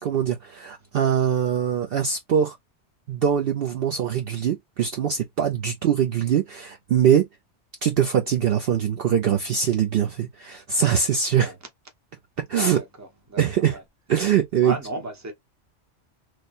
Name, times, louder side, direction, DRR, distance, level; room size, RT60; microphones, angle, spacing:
voice 1, 0.0-2.6 3.1-7.3 7.8-11.5 12.5-12.8 13.4-13.8 14.1-14.7, right 8 dB, 60° right, 0.7 m, -22 dB
voice 2, 12.5-13.8 14.6-15.3, right 2 dB, 15° right, 0.8 m, -35 dB
3.2 x 2.1 x 4.0 m
omnidirectional pair, 1.2 m